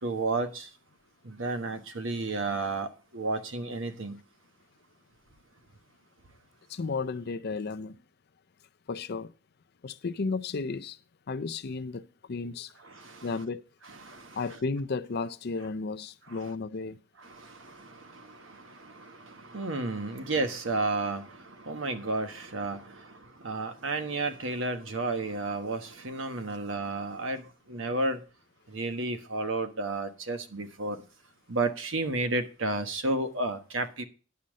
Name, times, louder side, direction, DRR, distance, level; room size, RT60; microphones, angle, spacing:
voice 1, 0.0-0.7 1.2-4.2 12.8-13.3 14.0-14.6 16.3-16.4 17.2-28.2 28.7-31.0 31.5-34.0, right 2 dB, 65° right, 1.3 m, -32 dB
voice 2, 6.7-8.0 8.9-9.3 9.8-11.0 11.3-12.7 13.2-13.6 14.3-17.0, left 4 dB, 50° left, 0.5 m, -33 dB
10.5 x 5.6 x 6.3 m
head